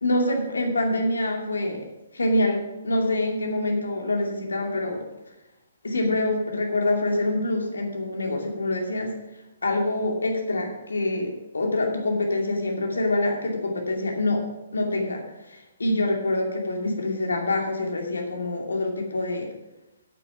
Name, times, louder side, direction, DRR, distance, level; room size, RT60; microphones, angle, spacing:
voice 1, 0.0-1.8 2.1-5.0 5.8-9.1 9.6-14.4 14.7-15.2 15.5-19.5, left 2 dB, 75° left, 1 dB, 2.5 m, -25 dB
9.0 x 8.7 x 5.9 m, 0.99 s
figure-of-eight pair, 130°, 0 cm